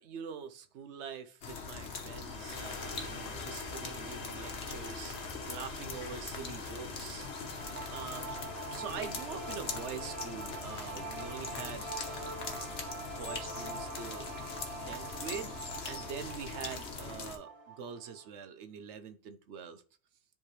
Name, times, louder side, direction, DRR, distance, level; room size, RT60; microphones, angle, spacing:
voice 1, 0.0-7.3 7.9-8.3 8.7-12.7 13.2-14.3 14.9-15.6 15.9-19.8, right 6 dB, 85° right, 1.0 m, -44 dB
sound 1, 1.4-17.4, left 5 dB, 80° left, 1.2 m, -42 dB
sound 2, 2.1-16.5, left 3 dB, 40° left, 1.0 m, -49 dB
sound 3, 7.2-18.3, right 3 dB, 65° right, 1.5 m, -44 dB
10.0 x 3.5 x 3.2 m
omnidirectional pair, 1.1 m